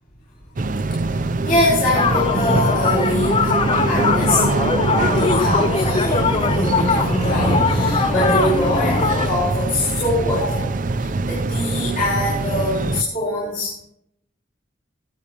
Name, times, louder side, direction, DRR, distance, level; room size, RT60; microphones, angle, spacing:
sound 1, 0.6-13.0, right 2 dB, 45° right, 0.5 m, -23 dB
voice 1, 1.0-3.5 3.9-4.5 5.1-13.7, left 1 dB, 50° left, -8 dB, 4.2 m, -23 dB
sound 2, 1.9-9.3, left 4 dB, 30° left, 0.5 m, -21 dB
20.5 x 8.1 x 3.0 m, 0.77 s
head